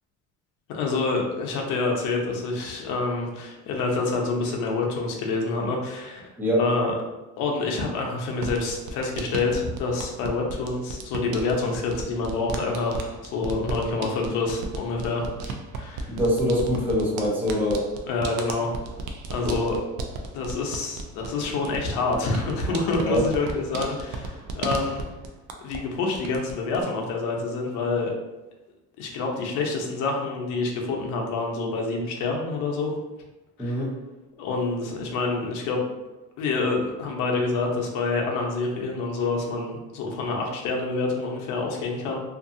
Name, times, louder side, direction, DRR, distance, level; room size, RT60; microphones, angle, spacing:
voice 1, 0.7-6.3 6.6-6.9 7.4-16.1 18.1-18.7 19.3-19.8 20.3-25.0 25.6-28.1 29.0-32.9 33.6-33.7 34.4-35.8 36.4-42.2, left 3 dB, 70° left, 0 dB, 0.7 m, -27 dB
sound 1, 8.4-25.9 26.1-26.8, right 3 dB, 70° right, 0.4 m, -35 dB
voice 2, 16.1-17.8 19.4-19.6 22.9-23.2 33.6-33.9, equal, 5° right, -5 dB, 0.5 m, -24 dB
2.6 x 2.6 x 2.5 m, 1.0 s
cardioid pair, 175°, 31 cm